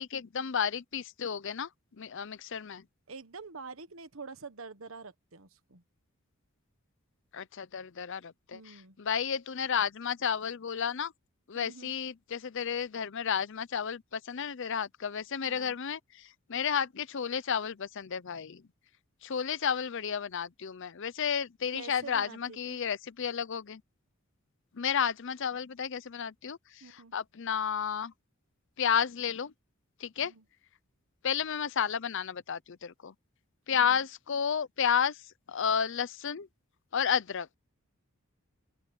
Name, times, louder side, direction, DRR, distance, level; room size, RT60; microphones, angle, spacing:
voice 1, 0.0-1.7 2.0-2.8 7.3-11.1 11.5-18.6 19.2-23.8 24.7-28.1 28.8-29.5 30.0-30.3 31.2-33.1 33.7-36.5 36.9-37.5, left 7 dB, 60° left, 0.6 m, -32 dB
voice 2, 3.1-5.8 8.5-9.0 11.5-11.9 15.4-15.8 21.7-22.8 26.8-27.1 30.2-30.4 33.7-34.0, right 4 dB, 65° right, 1.3 m, -47 dB
open air
head